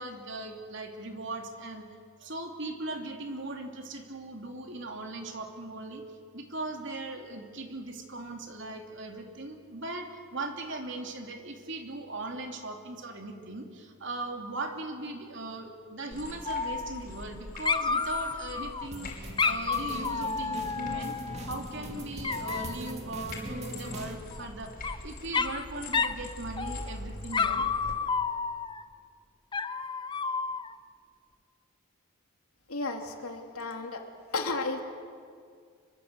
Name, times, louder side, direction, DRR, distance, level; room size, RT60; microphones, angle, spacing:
voice 1, 0.0-1.8 2.2-6.0 6.3-21.2 21.4-24.7 25.0-27.6, right 2 dB, 55° right, 3 dB, 3.1 m, -39 dB
sound 1, 16.1-27.9, left 1 dB, 40° left, 5.4 m, -44 dB
Dog, 16.4-17.4 17.6-18.9 19.4-21.5 22.2-22.9 24.3-25.0 25.3-25.6 25.9-26.2 26.6-27.0 27.3-28.8 29.5-30.7, left 5 dB, 20° left, 0.6 m, -31 dB
sound 2, 18.9-24.2, right 1 dB, 30° right, 2.5 m, -41 dB
voice 2, 32.7-34.0 34.3-34.8, left 3 dB, 80° left, 4 dB, 2.9 m, -33 dB
26.5 x 23.0 x 8.1 m, 2.1 s
head